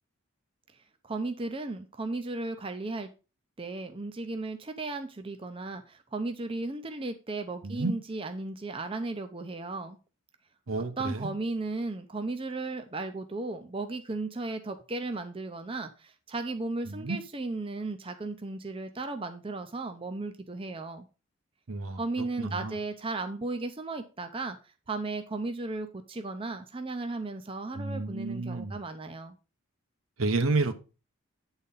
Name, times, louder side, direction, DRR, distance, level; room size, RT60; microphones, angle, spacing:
voice 1, 1.0-3.1 3.6-10.0 11.0-21.1 22.0-24.6 24.9-29.4, right 3 dB, 25° right, 0.6 m, -35 dB
voice 2, 10.7-11.3 16.9-17.2 21.7-22.0 22.4-22.7 27.8-28.8 30.2-30.7, right 3 dB, 70° right, 0.9 m, -30 dB
8.6 x 4.1 x 5.3 m
head